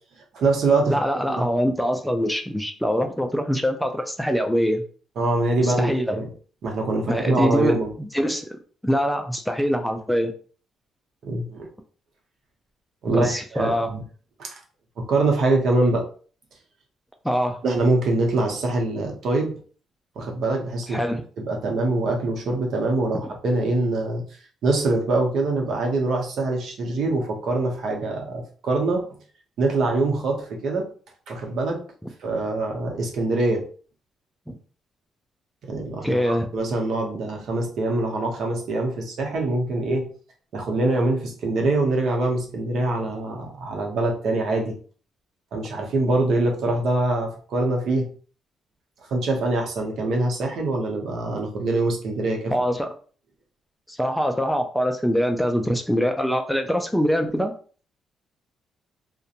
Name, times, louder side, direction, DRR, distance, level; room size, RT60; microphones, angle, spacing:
voice 1, 0.3-1.0 1.4-1.5 5.2-6.3 6.6-7.9 11.2-11.7 13.0-14.0 14.4-14.5 15.0-16.0 17.6-19.6 20.2-21.0 21.4-24.2 24.6-29.0 29.6-30.9 31.3-31.8 32.2-33.7 35.6-40.1 40.5-44.8 45.5-48.1 49.1-52.5, right 2 dB, 65° right, 1 dB, 0.8 m, -24 dB
voice 2, 0.9-4.8 5.6-6.2 7.1-8.5 8.8-10.3 13.1-13.9 17.2-17.6 20.9-21.2 34.5-34.6 36.0-36.5 52.5-52.9 53.9-57.5, equal, ahead, 5 dB, 0.3 m, -23 dB
2.4 x 2.1 x 2.8 m, 0.42 s
cardioid pair, 90°, 0 cm